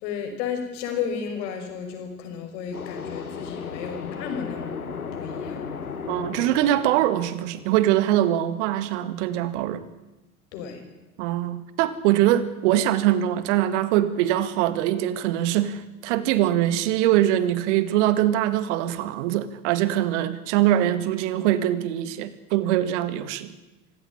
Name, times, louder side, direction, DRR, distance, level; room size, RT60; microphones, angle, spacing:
voice 1, 0.0-5.7 10.5-10.8, left 7 dB, 55° left, 5 dB, 5.9 m, -33 dB
sound 1, 2.7-8.4, left 6 dB, 80° left, 1.8 m, -36 dB
voice 2, 6.1-9.9 11.2-23.5, right 12 dB, 55° right, 14 dB, 2.0 m, -23 dB
25.5 x 16.0 x 10.0 m, 1.0 s
figure-of-eight pair, 80°, 42 cm